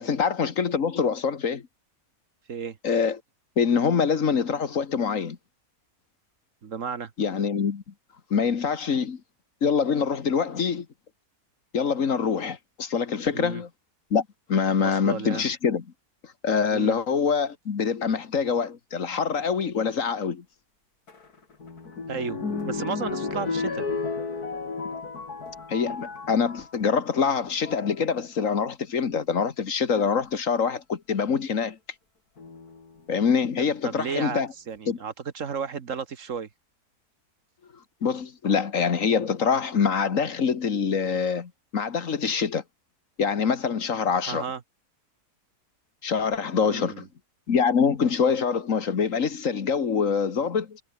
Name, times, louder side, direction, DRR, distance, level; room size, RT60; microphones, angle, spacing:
voice 1, 0.0-1.6 2.8-3.2 3.6-5.4 7.2-7.8 8.3-9.2 9.6-10.9 11.7-13.7 14.1-15.8 16.4-20.4 25.7-31.8 33.1-34.5 34.9-35.0 38.0-42.6 43.2-44.4 46.0-47.1 47.5-50.8, left 6 dB, 60° left, 1.8 m, -25 dB
voice 2, 6.6-7.1 13.3-13.6 14.8-15.4 16.7-16.9 22.1-23.9 33.8-36.5 44.3-44.6 46.5-47.0, right 6 dB, 55° right, 1.6 m, -33 dB
sound 1, 21.1-26.7 27.4-27.9 29.1-29.2 29.9-30.2 32.4-33.0 33.7-33.8 34.0-34.1, left 4 dB, 80° left, 3.5 m, -33 dB
omnidirectional pair, 1.6 m